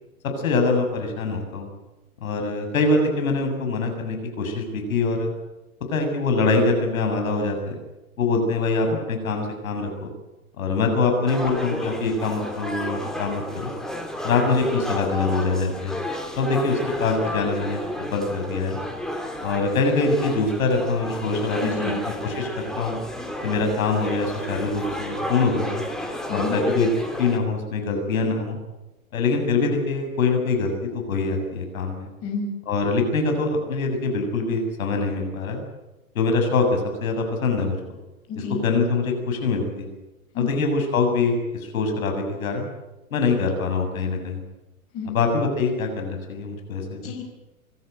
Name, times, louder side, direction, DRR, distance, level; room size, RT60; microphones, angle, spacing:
voice 1, 0.4-1.7 2.2-5.3 5.9-7.8 8.2-10.1 10.6-13.7 14.2-16.0 16.4-18.8 19.4-21.9 22.2-23.0 23.4-25.8 26.3-26.9 27.2-28.6 29.1-32.1 32.7-35.6 36.2-37.8 38.3-39.9 40.4-42.7 43.1-44.4 45.1-47.1, left 3 dB, 70° left, 4 dB, 7.2 m, -24 dB
sound 1, 11.3-27.4, left 1 dB, ahead, 2.6 m, -31 dB
voice 2, 21.6-22.0 26.3-26.6 32.2-32.6 38.3-38.6 40.3-40.5 44.9-45.2 47.0-47.2, left 5 dB, 30° left, 3 dB, 4.9 m, -30 dB
26.0 x 13.0 x 9.1 m, 1.0 s
hypercardioid pair, 120°, 43 cm